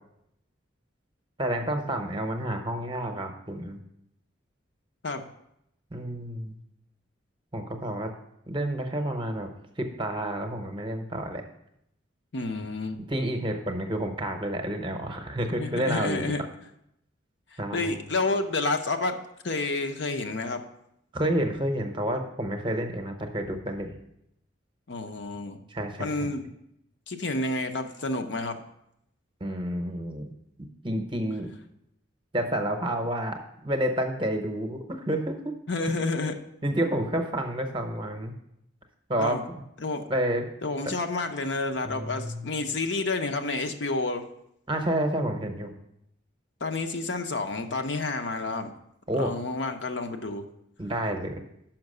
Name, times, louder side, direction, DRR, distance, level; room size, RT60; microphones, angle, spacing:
voice 1, 1.4-3.8 5.9-6.6 7.5-8.1 8.5-9.5 9.8-11.4 13.1-16.3 17.6-18.0 21.1-23.9 25.7-26.3 29.4-30.3 30.8-31.5 32.3-35.6 36.6-38.3 39.1-39.6 40.1-40.5 41.8-42.5 44.7-45.7 49.1-49.3 50.8-51.4, right 1 dB, 25° right, 5 dB, 0.8 m, -29 dB
voice 2, 12.3-13.0 15.5-16.4 17.5-19.2 19.4-20.6 24.9-25.6 26.0-26.4 27.1-28.6 35.7-36.4 39.2-39.4 39.8-40.0 40.6-44.2 46.6-48.7 49.1-50.5, left 3 dB, 60° left, 6 dB, 0.7 m, -29 dB
5.9 x 5.7 x 6.5 m, 0.79 s
head